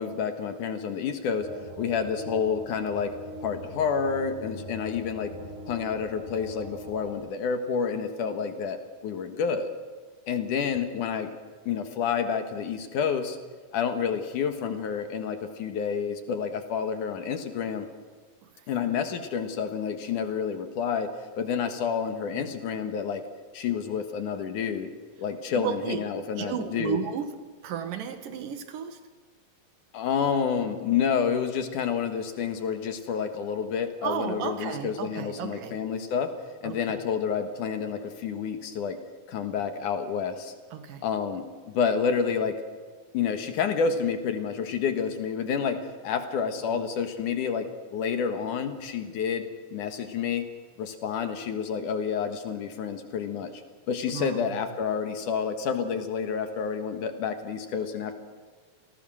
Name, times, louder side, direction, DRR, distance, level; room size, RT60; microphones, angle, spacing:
voice 1, 0.0-1.5 1.8-3.1 3.4-5.3 5.7-8.8 9.0-9.7 10.3-11.3 11.7-13.4 13.7-17.9 18.7-21.1 21.4-23.2 23.5-24.9 25.2-27.0 29.9-36.3 36.6-39.0 39.3-40.5 41.0-42.6 43.1-50.5 50.8-53.5 53.9-58.2, left 6 dB, 65° left, 7 dB, 2.9 m, -29 dB
sound 1, 1.4-7.2, right 1 dB, 20° left, 6.5 m, -41 dB
voice 2, 18.4-18.9 22.3-22.5 25.5-26.0 26.4-29.0 34.0-35.8 36.6-37.0 40.7-41.0 46.7-46.8 54.1-54.6, right 7 dB, 70° right, 8 dB, 3.1 m, -33 dB
28.0 x 18.5 x 6.3 m, 1.5 s
omnidirectional pair, 4.0 m